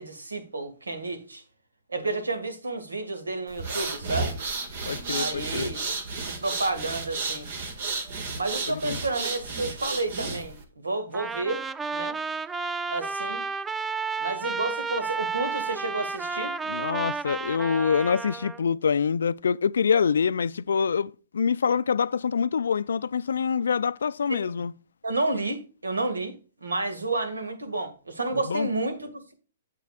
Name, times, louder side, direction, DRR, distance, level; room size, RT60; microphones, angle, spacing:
voice 1, 0.0-1.4 1.9-4.4 5.1-5.9 6.3-7.5 8.3-11.6 11.9-12.2 12.9-13.4 14.2-16.5 24.3-24.6 25.0-29.3, right 2 dB, 85° right, 1.9 m, -31 dB
sound 1, 3.5-10.6, right 3 dB, 55° right, 1.9 m, -32 dB
voice 2, 4.9-5.7 8.7-9.0 16.7-24.7 28.5-28.7, left 6 dB, 75° left, 0.3 m, -25 dB
Trumpet, 11.1-18.6, right 4 dB, 10° right, 0.3 m, -32 dB
9.4 x 7.5 x 2.4 m
hypercardioid pair, 125°, 0 cm